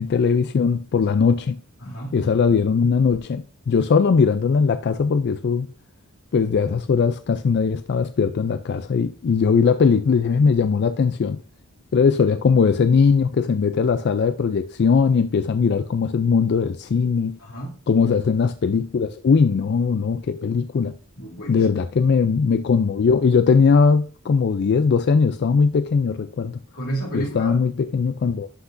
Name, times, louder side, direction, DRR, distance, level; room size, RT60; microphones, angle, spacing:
voice 1, 0.0-1.6 2.1-5.7 6.3-11.4 11.9-17.4 17.9-21.0 21.5-26.6 27.1-28.5, left 5 dB, 50° left, 0.3 m, -20 dB
voice 2, 1.8-2.2 17.4-17.7 21.2-21.7 26.7-27.6, right 1 dB, 90° left, 2.5 m, -31 dB
11.5 x 5.9 x 2.6 m
head